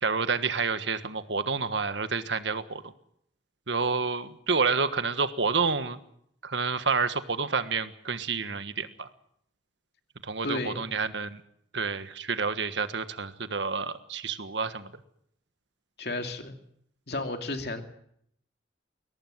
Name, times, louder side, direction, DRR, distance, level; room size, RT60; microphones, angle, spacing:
voice 1, 0.0-2.8 3.7-6.0 6.4-9.1 10.2-11.4 11.7-14.9, right 4 dB, 80° right, 11 dB, 1.5 m, -29 dB
voice 2, 10.4-10.8 16.0-16.6 17.1-17.8, left 2 dB, 60° left, 5 dB, 2.7 m, -32 dB
22.5 x 18.0 x 7.8 m, 0.70 s
head